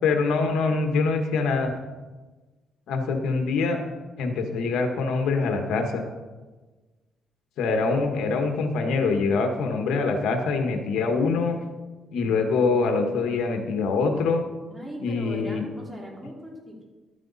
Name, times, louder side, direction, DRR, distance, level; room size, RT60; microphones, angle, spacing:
voice 1, 0.0-1.7 2.9-3.8 4.2-6.0 7.6-11.6 12.1-14.4 15.0-15.6, left 4 dB, 80° left, 4 dB, 1.4 m, -24 dB
voice 2, 14.7-16.8, right 1 dB, 20° right, -1 dB, 2.9 m, -39 dB
12.0 x 9.1 x 4.1 m, 1.3 s
cardioid pair, 90°, 0 cm